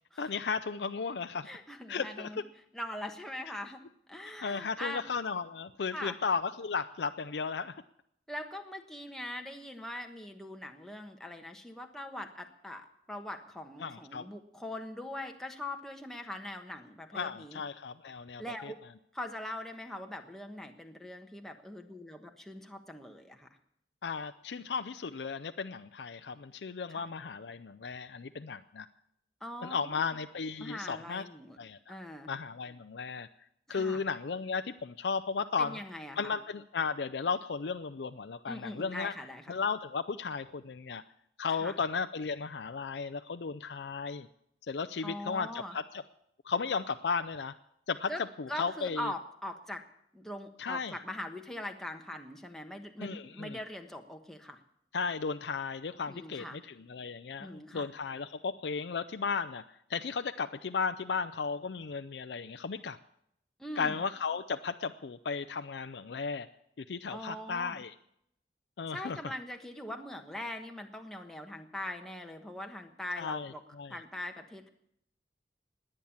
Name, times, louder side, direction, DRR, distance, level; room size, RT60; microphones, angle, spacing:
voice 1, 0.2-1.5 1.9-2.3 4.4-7.7 13.8-14.3 17.1-18.7 24.0-28.9 29.6-31.3 31.6-32.0 32.3-33.3 33.7-35.8 36.2-39.1 39.5-41.0 41.4-44.3 44.7-45.8 46.4-47.5 47.9-48.1 48.4-49.1 50.6-50.9 53.0-53.6 54.9-59.6 59.9-63.0 63.8-66.5 66.8-67.9 68.8-69.2 73.2-74.0, left 5 dB, 75° left, 9 dB, 0.5 m, -35 dB
voice 2, 1.4-2.4 2.7-3.8 4.1-5.0 5.9-6.2 8.3-17.6 18.4-18.7 19.1-23.5 26.9-27.1 29.4-30.0 30.6-31.6 31.9-32.3 33.7-34.0 35.6-36.3 38.5-39.5 41.6-41.7 45.0-45.8 48.1-48.2 48.5-49.8 50.1-54.6 56.1-56.6 57.4-57.9 63.6-64.0 67.1-67.8 68.9-73.6 73.9-74.7, left 1 dB, ahead, 3 dB, 1.2 m, -42 dB
20.0 x 8.8 x 7.2 m, 0.74 s
head